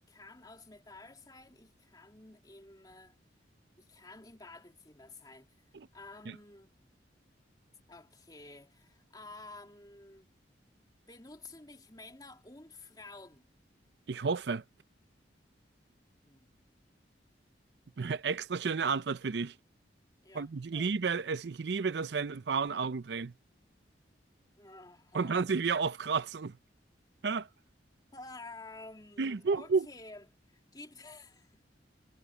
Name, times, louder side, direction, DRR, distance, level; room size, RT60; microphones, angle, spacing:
voice 1, 0.1-3.2 3.8-5.5 5.9-6.7 7.9-10.3 11.1-13.5 16.2-16.5 20.2-20.9 24.6-25.5 28.1-31.7, left 2 dB, 20° left, 3.0 m, -51 dB
voice 2, 14.1-14.6 18.0-19.5 20.3-23.3 25.1-26.6 27.2-27.5 29.2-29.9, right 5 dB, 65° right, 0.5 m, -31 dB
head